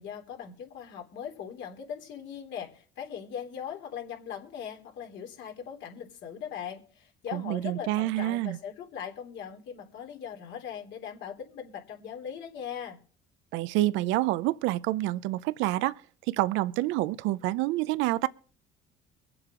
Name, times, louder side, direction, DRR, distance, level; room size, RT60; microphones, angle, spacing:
voice 1, 0.0-13.0, left 8 dB, 70° left, 3.3 m, -40 dB
voice 2, 7.3-8.6 13.5-16.0 16.3-18.3, right 16 dB, 80° right, 0.6 m, -27 dB
23.5 x 7.8 x 3.8 m
supercardioid pair, 95°, 20 cm